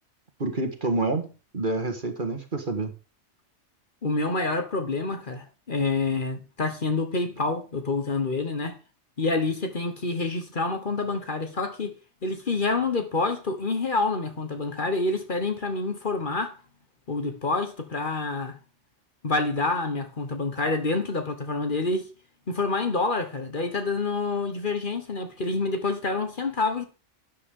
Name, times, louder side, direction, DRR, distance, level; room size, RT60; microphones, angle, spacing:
voice 1, 0.4-1.3 1.5-2.9, right 2 dB, 45° right, 1.8 m, -27 dB
voice 2, 4.0-8.8 9.2-11.9 12.2-16.6 17.1-18.6 19.2-22.1 22.5-26.9, left 3 dB, 45° left, 1.4 m, -27 dB
12.0 x 8.5 x 3.7 m
omnidirectional pair, 1.2 m